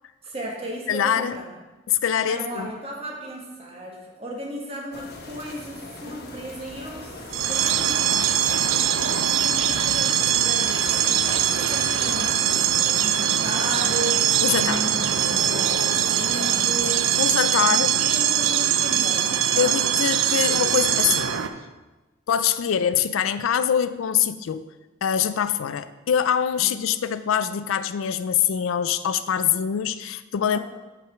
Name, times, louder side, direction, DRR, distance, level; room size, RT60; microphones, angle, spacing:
voice 1, 0.2-1.5 2.2-8.4 9.0-15.0 15.2-17.2 17.6-19.7 26.6-26.7 30.5-30.6, right 1 dB, 30° right, -1 dB, 1.5 m, -35 dB
voice 2, 0.9-1.4 1.9-2.7 14.4-14.8 17.2-17.9 19.6-21.3 22.3-24.6 25.0-30.6, left 8 dB, 80° left, 13 dB, 0.4 m, -24 dB
sound 1, 4.9-17.5, left 2 dB, 55° left, 1.0 m, -39 dB
sound 2, 7.3-21.5, right 9 dB, 70° right, 0.5 m, -22 dB
6.2 x 5.0 x 5.8 m, 1.1 s
head